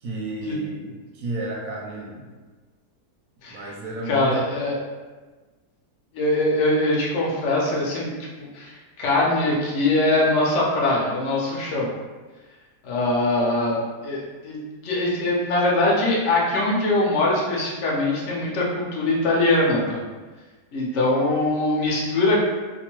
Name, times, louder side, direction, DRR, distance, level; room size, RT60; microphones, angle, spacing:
voice 1, 0.0-2.3 3.5-4.4, right 2 dB, 70° right, -2 dB, 0.9 m, -32 dB
voice 2, 4.1-4.8 6.1-8.1 8.4-11.9 12.8-20.0 20.7-22.4, left 2 dB, 60° left, -4 dB, 0.8 m, -22 dB
2.8 x 2.1 x 3.0 m, 1.3 s
omnidirectional pair, 1.8 m